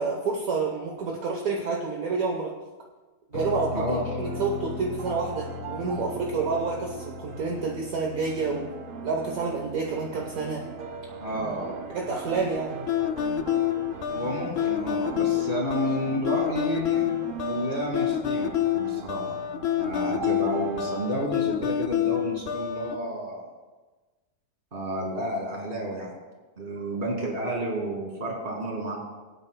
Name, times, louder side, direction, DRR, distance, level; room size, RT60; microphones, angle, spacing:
voice 1, 0.0-2.5 3.3-8.7 9.0-10.7 11.9-12.9, right 4 dB, 65° right, 0 dB, 1.4 m, -29 dB
sound 1, 3.3-17.0, left 4 dB, 55° left, 1.4 m, -41 dB
voice 2, 3.7-4.0 11.2-11.7 14.1-17.0 17.4-19.4 19.8-23.5 24.7-26.1 26.6-29.0, right 1 dB, 35° right, -1 dB, 2.4 m, -31 dB
sound 2, 4.2-21.3, right 6 dB, 80° right, 0.4 m, -40 dB
sound 3, 12.9-23.0, left 11 dB, 80° left, 0.5 m, -27 dB
22.5 x 8.8 x 2.2 m, 1.3 s
omnidirectional pair, 1.7 m